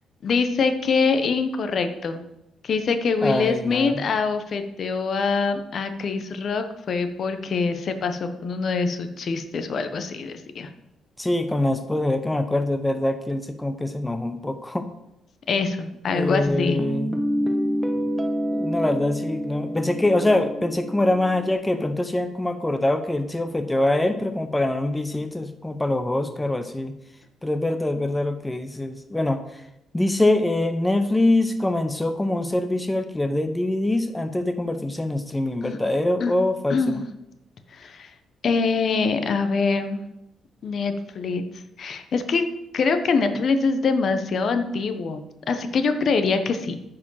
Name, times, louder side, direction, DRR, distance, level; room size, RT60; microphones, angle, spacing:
voice 1, 0.2-2.2 2.6-10.7 15.5-16.8 35.6-35.8 36.2-36.3 36.7-37.0 37.7-38.1 38.4-40.0 40.6-41.4 41.8-42.5 42.7-46.8, left 4 dB, 55° left, 8 dB, 0.9 m, -24 dB
voice 2, 3.2-4.0 11.2-14.9 16.1-17.1 18.0-18.1 18.5-26.9 27.4-29.6 29.9-36.8, left 1 dB, 10° left, 8 dB, 0.7 m, -24 dB
Guitar, 16.5-21.5, equal, 5° right, 1.2 m, -27 dB
9.5 x 4.9 x 5.7 m, 0.85 s
cardioid pair, 90°, 0 cm